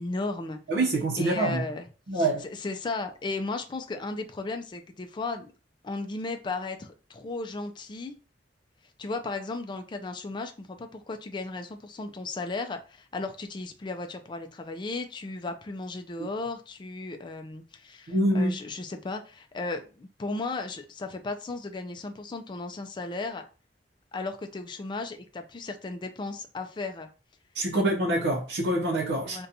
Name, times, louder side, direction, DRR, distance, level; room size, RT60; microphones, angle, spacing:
voice 1, 0.0-0.6 1.2-1.9 2.1-5.5 5.8-8.1 9.0-23.4 24.1-27.1 27.7-27.8 29.2-29.5, left 3 dB, 25° left, 0.3 m, -35 dB
voice 2, 0.7-1.6 2.1-2.4 18.1-18.5 27.5-29.4, right 1 dB, 70° right, 0.6 m, -25 dB
3.9 x 2.2 x 2.7 m
head